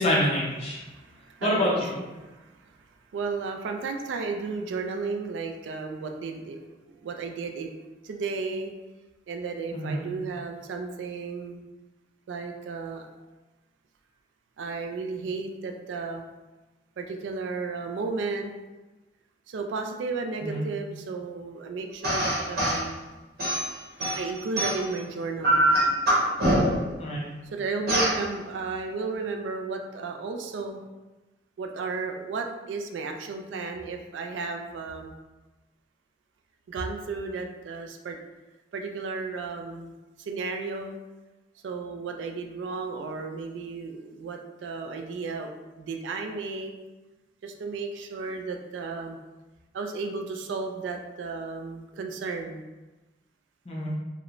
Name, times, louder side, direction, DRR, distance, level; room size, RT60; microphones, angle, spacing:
voice 1, 0.0-0.8 1.4-1.9 9.7-10.0 20.4-20.6 27.0-27.3 53.7-54.0, left 1 dB, 35° left, -5 dB, 0.5 m, -26 dB
voice 2, 0.9-2.7 3.1-6.6 6.9-7.7 8.0-8.7 9.3-11.6 12.3-13.1 14.6-16.2 17.0-18.5 19.5-23.0 24.2-25.7 27.5-30.8 31.6-35.1 36.7-38.2 38.7-39.9 40.2-41.0 41.6-45.5 45.8-46.7 47.4-49.2 49.7-52.6, right 4 dB, 90° right, 4 dB, 0.3 m, -33 dB
sound 1, 22.0-22.8 23.4-25.0 25.4-26.9 27.9-28.2, right 1 dB, 55° right, 0.8 m, -23 dB
3.0 x 2.0 x 2.4 m, 1.1 s
head